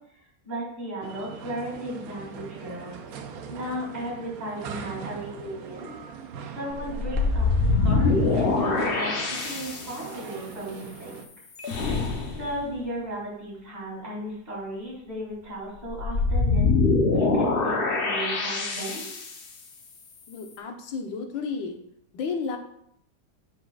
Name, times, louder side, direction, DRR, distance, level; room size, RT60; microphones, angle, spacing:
voice 1, 0.4-2.9 3.5-5.9 6.5-9.1 9.4-11.2 12.4-16.7 17.1-19.0, equal, 35° right, -5 dB, 3.1 m, -35 dB
sound 1, 1.0-11.3, right 6 dB, 65° right, 1.0 m, -41 dB
sound 2, 6.8-10.0 11.6-12.5 15.9-19.4, left 3 dB, 50° left, 0.7 m, -24 dB
voice 2, 20.3-21.8 22.1-22.6, left 5 dB, 85° left, 4 dB, 1.6 m, -32 dB
12.5 x 4.9 x 2.4 m, 0.71 s
omnidirectional pair, 2.0 m